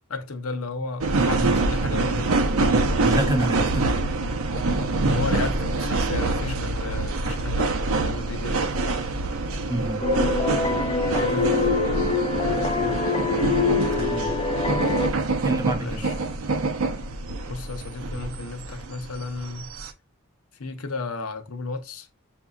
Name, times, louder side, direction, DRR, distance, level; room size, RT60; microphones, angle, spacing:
voice 1, 0.1-2.8 5.1-8.7 11.2-11.9 12.8-13.0 15.8-16.2 17.5-19.7 20.6-22.1, left 3 dB, 80° left, 0.8 m, -33 dB
sound 1, 1.0-19.9, right 2 dB, 70° right, 0.6 m, -25 dB
voice 2, 3.0-3.9 9.7-10.1 14.0-14.4 14.9-15.1 15.4-16.1, right 1 dB, 15° right, 0.7 m, -28 dB
sound 2, 10.0-15.1, left 4 dB, 25° left, 0.6 m, -25 dB
7.3 x 2.7 x 2.3 m
head